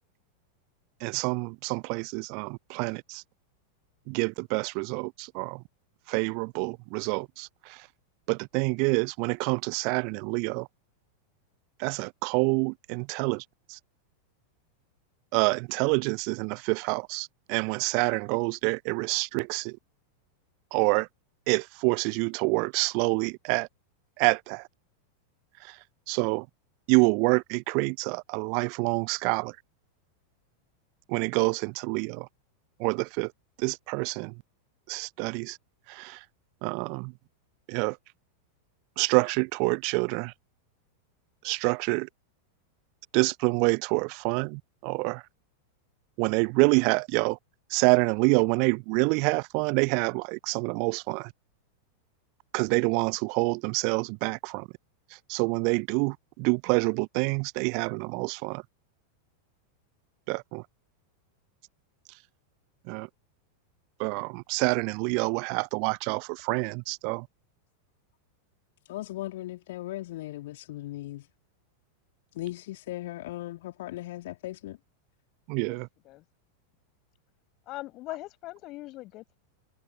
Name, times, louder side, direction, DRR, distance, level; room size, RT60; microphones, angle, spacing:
voice 1, 1.0-3.2 4.1-5.6 6.1-7.9 8.3-10.7 11.8-13.8 15.3-19.8 20.7-21.1 21.5-23.7 24.2-24.7 25.6-26.5 26.9-29.6 31.1-32.3 32.8-33.3 33.6-34.4 34.9-35.6 35.9-36.2 36.6-37.1 37.7-38.0 39.0-40.3 41.4-42.1 43.1-45.2 46.2-47.4 47.7-51.3 52.5-54.7 55.1-58.6 60.3-60.7 62.1-62.2 62.9-63.1 64.0-67.3 75.5-75.9, right 37 dB, 45° right, 0.6 m, -27 dB
voice 2, 68.9-71.3 72.3-74.8, left 16 dB, 55° left, 2.5 m, -37 dB
voice 3, 77.7-79.4, left 18 dB, 40° left, 6.5 m, -40 dB
figure-of-eight pair, 90°, 0 cm